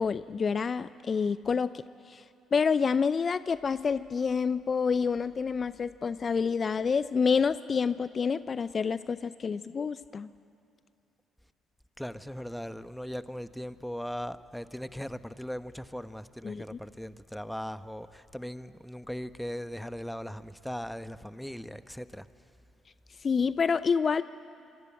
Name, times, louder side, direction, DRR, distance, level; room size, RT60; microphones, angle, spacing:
voice 1, 0.0-1.7 2.1-2.2 2.5-10.3 16.4-16.8 23.2-24.2, left 5 dB, 40° left, 0.6 m, -28 dB
voice 2, 12.0-22.3, equal, 5° left, 1.1 m, -39 dB
26.5 x 24.0 x 8.9 m
hypercardioid pair, 45°, 0 cm